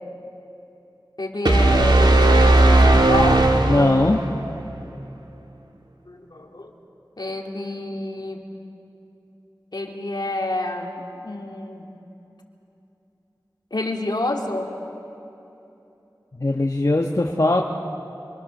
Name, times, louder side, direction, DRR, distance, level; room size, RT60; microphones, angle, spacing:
voice 1, 1.2-3.5 6.1-6.7 7.2-8.4 9.7-11.8 13.7-14.7, left 2 dB, 70° left, 0 dB, 2.7 m, -28 dB
sound 1, 1.5-4.4, right 2 dB, 80° right, 1.7 m, -16 dB
voice 2, 3.6-4.2 16.3-17.6, left 2 dB, 50° left, 0 dB, 1.2 m, -20 dB
28.5 x 25.0 x 6.6 m, 2.9 s
wide cardioid pair, 50°, 7 cm